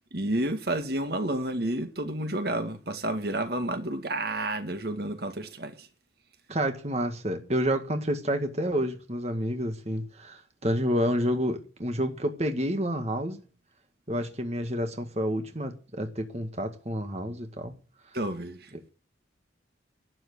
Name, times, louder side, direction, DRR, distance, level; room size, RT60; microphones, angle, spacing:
voice 1, 0.1-5.9 18.1-18.7, right 1 dB, 55° right, 1.9 m, -30 dB
voice 2, 6.5-13.4 14.1-17.7 18.7-18.8, equal, 35° right, 1.8 m, -29 dB
12.5 x 9.6 x 8.0 m
head